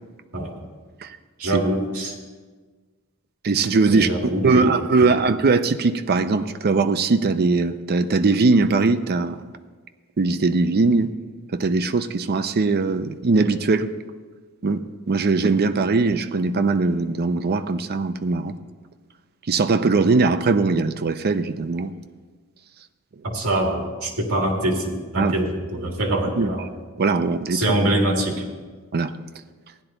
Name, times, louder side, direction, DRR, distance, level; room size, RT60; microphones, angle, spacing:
voice 1, 1.4-2.1 3.9-5.1 23.2-26.6 27.5-28.4, right 1 dB, 75° right, 0 dB, 2.2 m, -24 dB
voice 2, 3.4-4.1 4.4-9.4 10.2-11.1 11.5-13.9 14.6-18.6 19.5-21.9 25.2-25.3 26.4-26.5 27.0-27.6 28.9-29.1, right 3 dB, 45° right, 10 dB, 0.5 m, -20 dB
15.5 x 10.0 x 3.9 m, 1.4 s
head